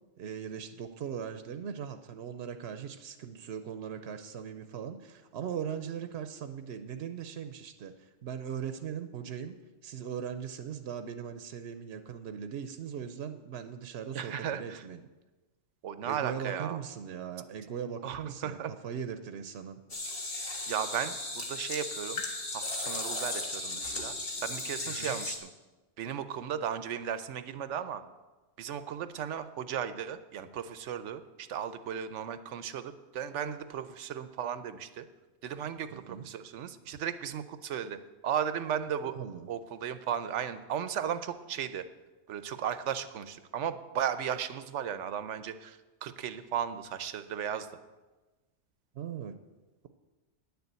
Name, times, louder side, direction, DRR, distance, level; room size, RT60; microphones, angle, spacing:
voice 1, 0.2-9.6 9.8-15.0 16.0-19.8 24.8-25.2 35.9-36.3 39.0-39.5 48.9-49.3, right 8 dB, 65° right, 8 dB, 0.9 m, -39 dB
voice 2, 14.1-14.8 15.8-16.8 18.0-18.7 20.7-22.2 22.5-24.1 24.4-25.5 26.0-28.0 28.6-35.0 35.4-38.0 38.2-39.1 39.5-41.8 42.3-47.7, right 8 dB, 90° right, 12 dB, 1.0 m, -35 dB
sound 1, 19.9-25.4, left 2 dB, 55° left, 1.7 m, -36 dB
9.7 x 7.0 x 8.0 m, 1.2 s
omnidirectional pair, 1.2 m